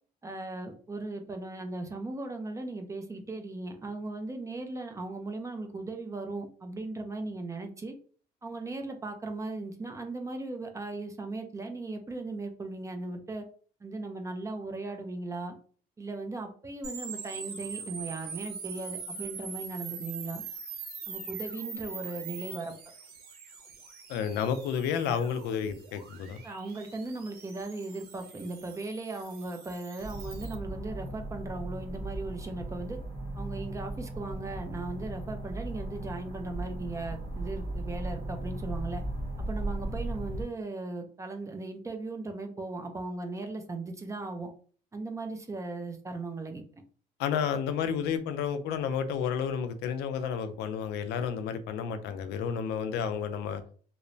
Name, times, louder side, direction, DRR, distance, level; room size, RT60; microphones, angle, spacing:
voice 1, 0.2-7.9 8.4-13.4 13.8-15.5 16.0-20.4 21.1-22.7 26.4-33.0 33.3-39.0 39.4-44.5 44.9-46.8, right 2 dB, 20° right, 0.5 m, -37 dB
sound 1, 16.8-30.5, right 5 dB, 70° right, 0.8 m, -43 dB
voice 2, 24.1-26.4 47.2-53.6, left 7 dB, 85° left, 0.4 m, -31 dB
sound 2, 30.0-40.4, right 1 dB, 40° right, 1.2 m, -37 dB
3.0 x 2.0 x 2.5 m
cardioid pair, 110°, 17 cm